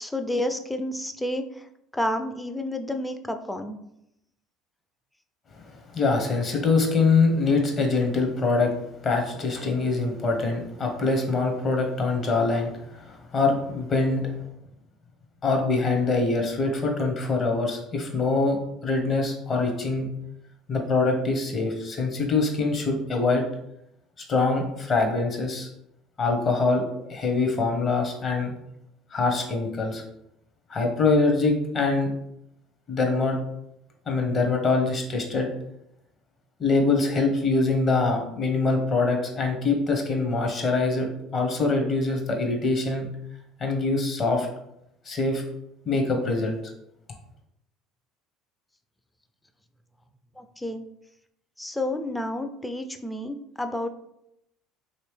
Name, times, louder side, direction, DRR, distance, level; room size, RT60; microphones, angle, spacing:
voice 1, 0.0-1.7 1.9-3.8 50.4-50.8 51.6-53.9, left 1 dB, 10° left, 7 dB, 0.4 m, -30 dB
voice 2, 5.6-8.7 9.0-14.3 15.4-20.1 20.7-23.4 24.3-25.7 26.2-28.5 29.1-30.0 30.7-32.1 32.9-33.4 34.1-35.5 36.6-43.1 43.6-44.5 45.0-45.4 45.9-46.5, left 3 dB, 40° left, 3 dB, 1.0 m, -24 dB
3.0 x 2.9 x 3.2 m, 0.79 s
supercardioid pair, 80°, 0 cm